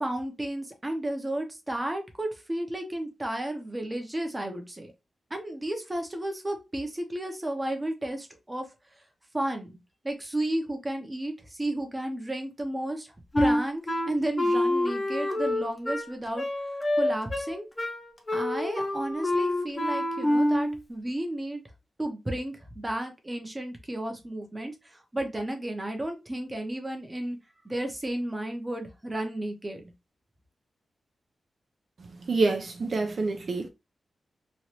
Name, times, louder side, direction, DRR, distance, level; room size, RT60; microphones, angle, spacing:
voice 1, 0.0-4.9 5.3-8.6 9.3-9.8 10.0-16.5 17.0-17.7 18.3-21.6 22.0-27.4 27.6-29.8, right 1 dB, 20° right, 0.7 m, -33 dB
Wind instrument woodwind instrument, 13.3-20.8, left 1 dB, 25° left, 0.6 m, -27 dB
voice 2, 32.3-33.7, right 3 dB, 50° right, 0.4 m, -26 dB
3.1 x 2.5 x 2.8 m
wide cardioid pair, 130°, 0 cm